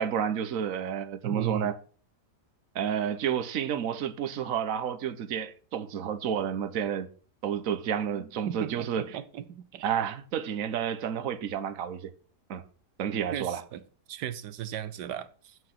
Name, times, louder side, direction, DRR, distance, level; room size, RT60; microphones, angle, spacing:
voice 1, 0.0-1.8 2.7-7.1 7.4-9.2 9.8-12.1 12.5-12.6 13.0-13.6, right 8 dB, 55° right, 1.3 m, -30 dB
voice 2, 1.2-1.7 8.5-9.9 13.3-13.8 14.1-15.6, right 11 dB, 80° right, 1.3 m, -36 dB
9.8 x 7.9 x 5.9 m
omnidirectional pair, 1.8 m